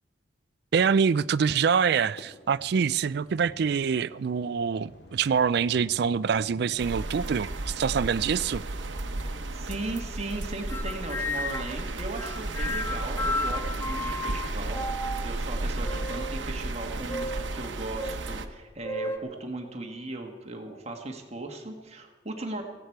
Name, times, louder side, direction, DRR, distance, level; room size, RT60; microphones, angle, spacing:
voice 1, 0.7-8.6, right 6 dB, 55° right, 0.4 m, -25 dB
sound 1, 2.2-11.5, equal, 70° left, 2.3 m, -52 dB
sound 2, 6.8-18.5, right 2 dB, 75° right, 1.0 m, -33 dB
voice 2, 9.2-22.6, right 2 dB, 35° right, 1.6 m, -37 dB
sound 3, 10.7-11.8 12.2-15.4 15.8-16.4 17.1-17.5 18.0-18.2 18.8-19.2, left 2 dB, 10° left, 0.8 m, -33 dB
18.0 x 15.5 x 4.6 m
head